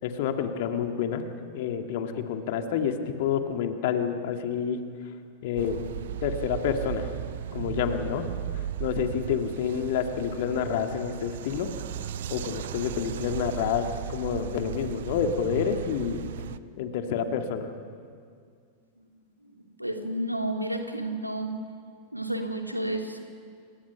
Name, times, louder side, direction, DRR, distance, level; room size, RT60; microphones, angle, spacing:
voice 1, 0.0-1.2 1.5-4.8 5.4-5.9 6.2-7.1 7.5-8.3 8.8-11.7 12.3-16.2 16.8-17.7, left 8 dB, 50° left, 5 dB, 2.5 m, -28 dB
sound 1, 5.6-16.6, right 11 dB, 60° right, 0.8 m, -36 dB
voice 2, 19.8-21.5 22.1-23.2, right 1 dB, 90° right, 3 dB, 2.6 m, -31 dB
29.0 x 27.5 x 6.1 m, 2.2 s
figure-of-eight pair, 90°, 0 cm